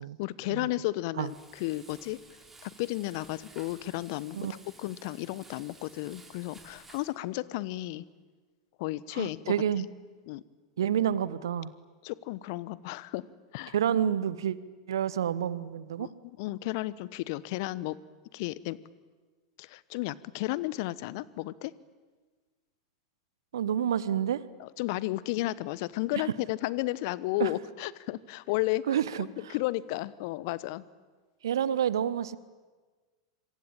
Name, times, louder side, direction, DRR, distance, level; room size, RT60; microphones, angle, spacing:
voice 1, 0.2-2.2 2.6-4.4 4.8-8.0 8.8-9.4 10.3-10.4 12.0-13.2 13.5-13.7 16.0-18.0 18.3-18.8 19.6-21.7 24.6-28.9 29.2-30.8, left 18 dB, 55° left, 19 dB, 1.1 m, -33 dB
Frying (food), 1.2-7.1, right 3 dB, 10° right, 4.5 m, -54 dB
voice 2, 9.1-9.9 10.8-11.7 13.7-14.6 14.9-16.1 23.5-24.4 27.4-27.5 28.9-29.5 31.4-32.4, right 9 dB, 70° right, 18 dB, 1.2 m, -29 dB
26.0 x 24.5 x 8.9 m, 1.4 s
figure-of-eight pair, 90°, 2 cm